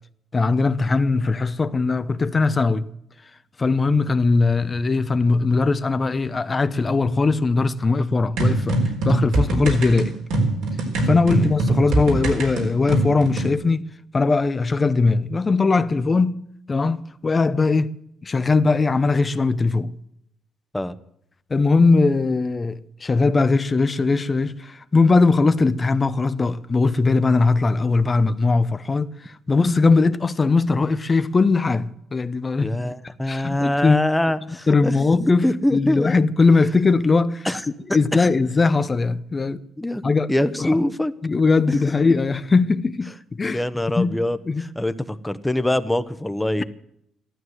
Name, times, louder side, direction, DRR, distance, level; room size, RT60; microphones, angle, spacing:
voice 1, 0.3-2.8 3.6-8.8 9.0-10.1 11.0-13.9 14.1-16.4 16.7-17.9 18.2-19.9 21.5-32.7 33.3-34.0 34.7-37.5 37.9-39.6 40.0-40.3 40.6-40.7 41.2-43.1 43.4-43.6 44.0-44.2 44.5-44.6, left 3 dB, 30° left, 0.8 m, -20 dB
sound 1, 8.4-13.5, right 2 dB, 85° right, 4.1 m, -22 dB
voice 2, 32.6-35.0 35.4-36.1 37.4-37.6 38.1-38.3 39.8-40.0 40.3-41.1 41.7-42.0 43.5-46.6, left 1 dB, 10° left, 1.0 m, -24 dB
14.5 x 12.5 x 7.9 m
cardioid pair, 90°, 0 cm